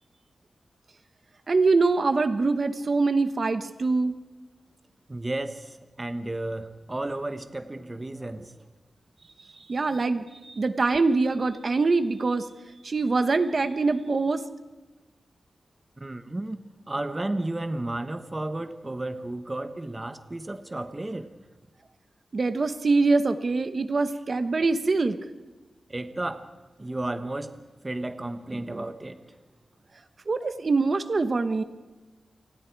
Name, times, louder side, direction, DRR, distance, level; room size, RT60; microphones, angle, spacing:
voice 1, 1.5-4.2 9.6-12.5 12.8-14.4 22.3-25.2 30.3-31.6, right 3 dB, 40° right, 10 dB, 1.1 m, -24 dB
voice 2, 5.1-8.7 16.0-16.6 16.9-21.3 25.9-26.5 26.8-29.4, right 2 dB, 20° right, 9 dB, 1.1 m, -33 dB
29.0 x 25.5 x 4.7 m, 1.2 s
wide cardioid pair, 160°, 0 cm